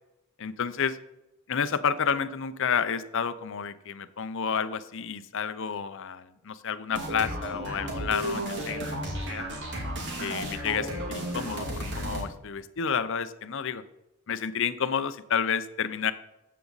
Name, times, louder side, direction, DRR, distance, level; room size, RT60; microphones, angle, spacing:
voice 1, 0.4-1.0 1.5-9.5 10.2-13.8 14.3-16.1, left 7 dB, 60° left, 13 dB, 0.7 m, -30 dB
sound 1, 6.9-12.2, right 1 dB, 55° right, 2.4 m, -33 dB
13.0 x 8.4 x 4.0 m, 0.93 s
head